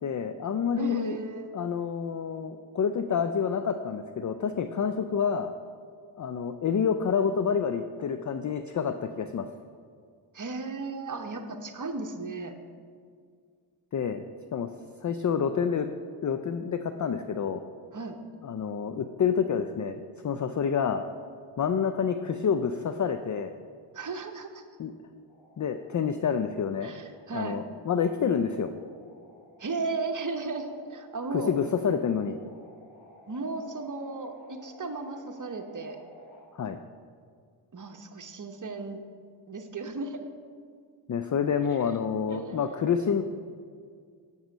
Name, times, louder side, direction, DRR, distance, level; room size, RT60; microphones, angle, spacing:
voice 1, 0.0-1.2 1.5-5.5 6.2-9.5 13.9-14.2 14.5-14.7 15.0-15.9 16.2-17.6 18.4-21.0 21.6-23.5 24.8-24.9 25.6-26.9 27.3-28.7 31.3-32.4 36.5-36.8 41.1-43.2, left 7 dB, 40° left, 9 dB, 0.4 m, -28 dB
voice 2, 0.8-1.5 10.3-12.5 17.9-18.2 23.9-24.7 26.8-27.6 29.6-31.5 33.3-36.0 37.7-39.0 39.5-40.2 41.7-41.8 42.3-42.9, right 3 dB, 40° right, 5 dB, 0.9 m, -35 dB
sound 1, 25.3-36.4, left 1 dB, 70° left, 1.7 m, -55 dB
7.9 x 5.5 x 5.2 m, 2.1 s
cardioid pair, 40°, 49 cm